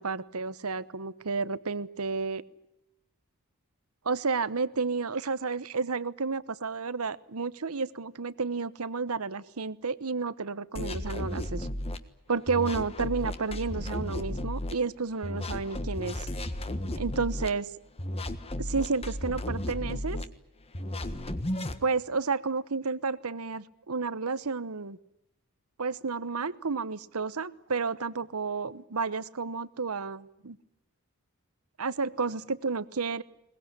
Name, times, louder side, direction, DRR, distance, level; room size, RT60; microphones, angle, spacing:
voice 1, 0.0-2.4 4.0-11.7 12.3-16.3 17.0-17.7 18.6-20.2 21.8-25.0 25.8-30.6 31.8-33.2, right 4 dB, 90° right, 16 dB, 1.0 m, -31 dB
sound 1, 10.8-12.0 12.5-14.7 15.2-17.5 18.0-20.3 20.7-21.8, left 1 dB, 25° left, 1.5 m, -34 dB
22.0 x 20.0 x 9.9 m, 0.83 s
head